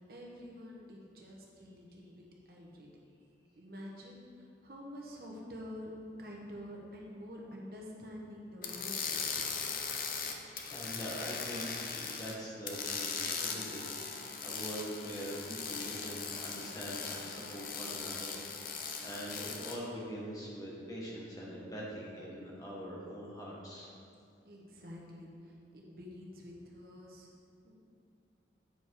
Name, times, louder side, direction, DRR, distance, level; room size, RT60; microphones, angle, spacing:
voice 1, 0.1-2.9 3.5-5.9 6.2-9.4 24.4-27.3 27.6-27.8, equal, 55° right, -2 dB, 1.2 m, -48 dB
sound 1, 8.6-12.4 12.7-19.8, left 5 dB, 50° left, 0.7 m, -39 dB
voice 2, 9.9-13.8 14.1-23.9, equal, 20° left, -5 dB, 1.5 m, -43 dB
8.9 x 5.3 x 4.8 m, 2.6 s
head